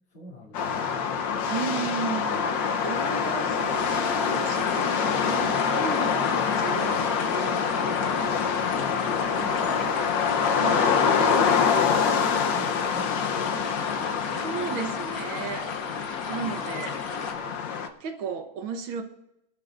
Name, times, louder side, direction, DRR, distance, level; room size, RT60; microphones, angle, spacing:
voice 1, 0.1-1.0 8.6-9.6 10.8-13.7 14.0-14.8 16.4-16.8, left 2 dB, 90° left, 3.7 m, -45 dB
sound 1, 0.5-17.9, left 6 dB, 65° left, 1.4 m, -26 dB
voice 2, 1.5-2.6 2.8-8.2 9.4-10.0 10.5-11.1 11.6-12.2 14.4-15.7 16.3-17.0 18.0-19.0, right 6 dB, 70° right, 1.9 m, -35 dB
sound 2, 3.7-17.3, left 5 dB, 50° left, 1.5 m, -36 dB
23.5 x 11.5 x 2.5 m
omnidirectional pair, 2.4 m